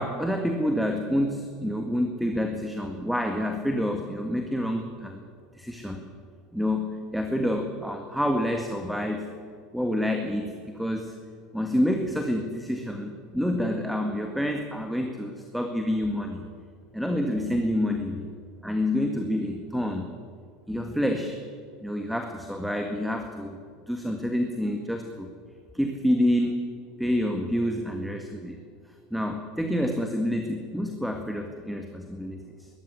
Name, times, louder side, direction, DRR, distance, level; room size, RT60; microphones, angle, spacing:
voice 1, 0.0-5.2 5.5-6.0 6.5-9.3 9.7-11.2 11.5-16.5 16.9-18.3 18.6-20.1 20.7-21.4 21.8-23.6 23.9-25.3 25.7-26.7 27.0-28.6 29.1-32.7, equal, ahead, 4 dB, 1.8 m, -28 dB
19.5 x 14.0 x 9.6 m, 2.1 s
supercardioid pair, 110°, 0 cm